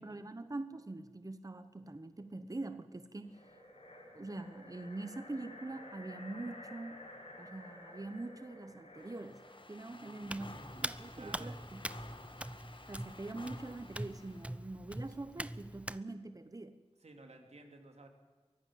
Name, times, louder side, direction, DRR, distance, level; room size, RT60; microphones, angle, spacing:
voice 1, 0.0-3.5 4.1-7.0 7.4-9.4 9.7-11.8 12.9-16.8, right 2 dB, 30° right, 11 dB, 1.0 m, -44 dB
sound 1, 3.2-9.7, left 1 dB, 75° left, 6.7 m, -52 dB
sound 2, 9.0-14.7, left 2 dB, 50° left, 1.7 m, -54 dB
voice 2, 9.9-11.6 17.0-18.1, right 2 dB, 75° right, 4 dB, 3.1 m, -55 dB
Hands, 10.3-16.0, right 1 dB, 10° right, 0.6 m, -43 dB
23.5 x 15.0 x 7.6 m, 1.4 s
wide cardioid pair, 55°, 11 cm